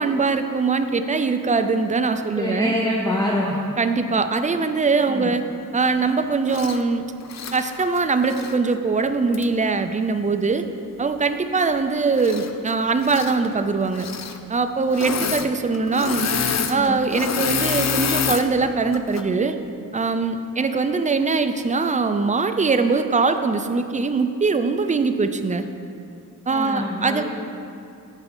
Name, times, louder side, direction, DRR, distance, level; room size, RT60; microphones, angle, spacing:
voice 1, 0.0-2.7 3.8-5.4 5.7-7.0 7.5-10.6 11.0-14.1 14.5-16.3 16.7-19.6 19.9-25.6 26.5-27.2, right 4 dB, 20° right, 8 dB, 0.3 m, -22 dB
voice 2, 2.3-3.6 5.1-5.3 16.7-17.0 26.5-27.2, left 1 dB, 10° left, -3 dB, 0.7 m, -25 dB
Engine / Mechanisms, 6.5-6.8 7.2-8.6 9.3-9.4 12.1-12.7 13.0-13.4 13.9-14.4 14.9-15.5 15.7-18.4 18.9-19.2, left 7 dB, 50° left, 0.5 m, -26 dB
8.0 x 5.4 x 5.4 m, 2.5 s
wide cardioid pair, 130°, 35 cm